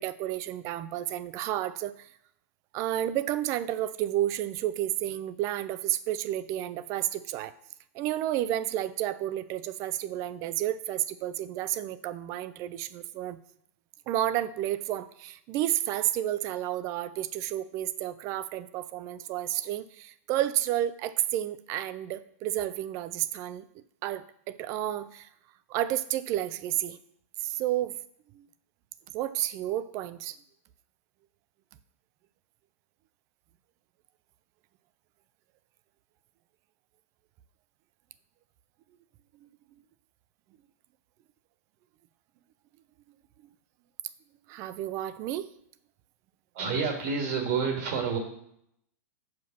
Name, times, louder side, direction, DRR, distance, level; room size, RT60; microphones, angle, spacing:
voice 1, 0.0-2.1 2.7-7.5 7.9-13.4 14.1-23.6 24.0-24.2 24.6-25.3 25.7-27.0 27.4-27.9 28.3-28.5 29.1-30.4 44.5-45.5, right 13 dB, 35° right, 15 dB, 0.5 m, -31 dB
voice 2, 46.5-48.2, right 5 dB, 50° right, 2 dB, 1.7 m, -28 dB
5.6 x 5.1 x 5.9 m, 0.72 s
hypercardioid pair, 135°, 9 cm